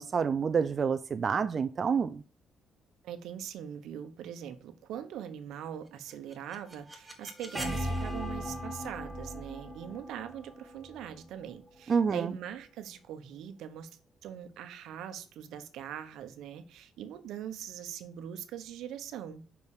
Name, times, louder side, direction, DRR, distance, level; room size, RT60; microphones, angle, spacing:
voice 1, 0.0-2.2 11.9-12.3, right 6 dB, 45° right, 0.5 m, -28 dB
voice 2, 3.0-13.9 14.2-19.4, right 9 dB, 85° right, 1.0 m, -42 dB
sound 1, 6.1-12.0, equal, 5° right, 2.0 m, -39 dB
6.0 x 5.4 x 6.7 m
cardioid pair, 90°, 0 cm